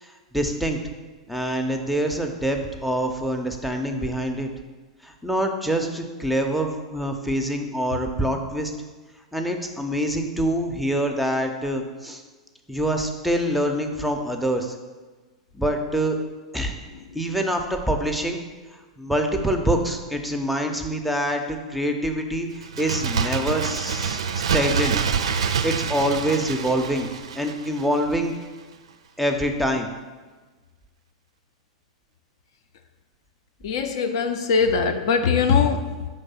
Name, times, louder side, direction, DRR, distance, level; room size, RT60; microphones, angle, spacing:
voice 1, 0.0-0.8 1.3-4.5 5.0-8.7 9.3-12.2 12.7-14.8 15.5-16.2 16.5-16.7 17.1-18.4 19.0-25.0 25.6-27.1 27.4-28.3 29.2-29.9, right 1 dB, ahead, 4 dB, 0.5 m, -25 dB
Bird, 22.6-28.1 28.4-28.5, right 6 dB, 65° right, 0.4 m, -26 dB
voice 2, 33.6-36.1, left 5 dB, 55° left, 7 dB, 0.4 m, -21 dB
5.2 x 3.3 x 5.5 m, 1.3 s
figure-of-eight pair, 95°, 3 cm